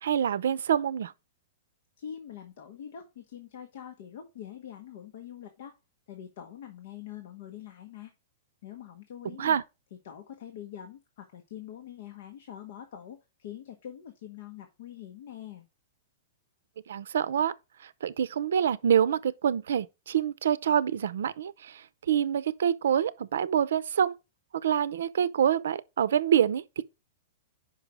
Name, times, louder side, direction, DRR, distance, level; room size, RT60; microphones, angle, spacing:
voice 1, 0.0-1.1 9.4-9.6 16.9-17.5 17.8-24.1 24.5-26.8, right 9 dB, 80° right, 0.6 m, -26 dB
voice 2, 2.0-5.8 6.1-8.1 8.6-9.6 10.0-15.7, left 10 dB, 50° left, 1.1 m, -44 dB
5.6 x 4.8 x 5.2 m
supercardioid pair, 175°, 0 cm